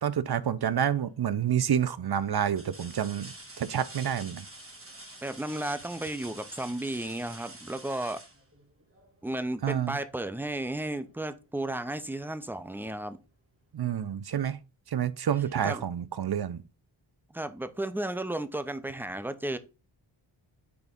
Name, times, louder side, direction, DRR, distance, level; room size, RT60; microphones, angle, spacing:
voice 1, 0.0-4.4 9.6-10.0 13.7-14.6 14.9-16.6, right 9 dB, 50° right, 0.6 m, -28 dB
sound 1, 0.8-1.2 1.8-1.9 2.5-9.2 11.0-11.1 11.6-12.6 13.9-14.0, right 1 dB, 25° right, 1.6 m, -48 dB
voice 2, 5.2-8.2 9.2-13.2 15.6-15.8 17.3-19.6, right 1 dB, 5° right, 0.6 m, -33 dB
6.1 x 3.6 x 5.1 m
wide cardioid pair, 75°, 49 cm